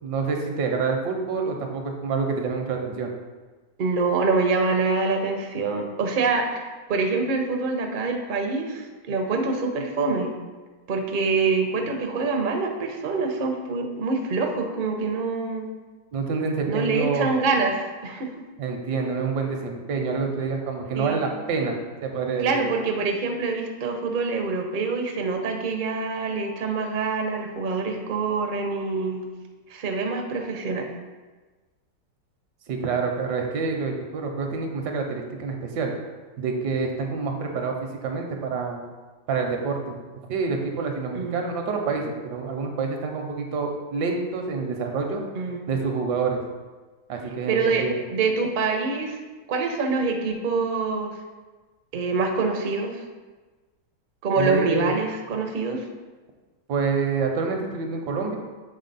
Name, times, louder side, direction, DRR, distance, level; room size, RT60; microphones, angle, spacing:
voice 1, 0.0-3.1 16.1-17.3 18.6-22.6 32.7-35.9 36.4-37.7 38.0-38.8 39.3-40.0 40.3-45.2 45.7-46.4 47.1-48.0 54.4-54.9 56.7-58.4, right 4 dB, 75° right, 3 dB, 1.3 m, -27 dB
voice 2, 3.8-10.3 10.9-15.7 16.7-18.3 21.0-21.2 22.4-29.2 29.7-30.9 41.1-41.4 45.3-45.6 47.5-49.2 49.5-51.1 51.9-53.0 54.2-55.9, right 4 dB, 55° right, 3 dB, 0.5 m, -25 dB
6.4 x 3.9 x 4.0 m, 1.3 s
omnidirectional pair, 1.9 m